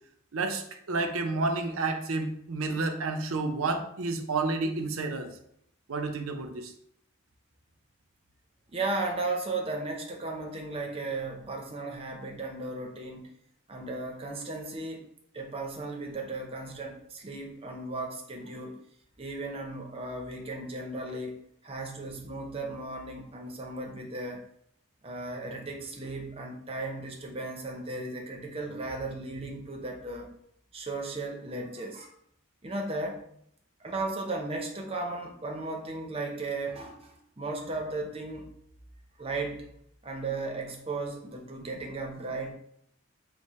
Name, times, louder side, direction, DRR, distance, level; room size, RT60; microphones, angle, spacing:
voice 1, 0.3-5.3 5.9-6.7, right 3 dB, 75° right, 6 dB, 0.5 m, -30 dB
voice 2, 8.7-13.3 13.7-15.0 15.3-18.7 19.2-21.4 21.6-24.4 25.0-30.3 30.7-32.1 32.6-33.2 33.8-38.5 39.2-39.7 40.0-42.5, right 2 dB, 25° right, 1 dB, 0.6 m, -35 dB
4.7 x 2.1 x 4.2 m, 0.70 s
head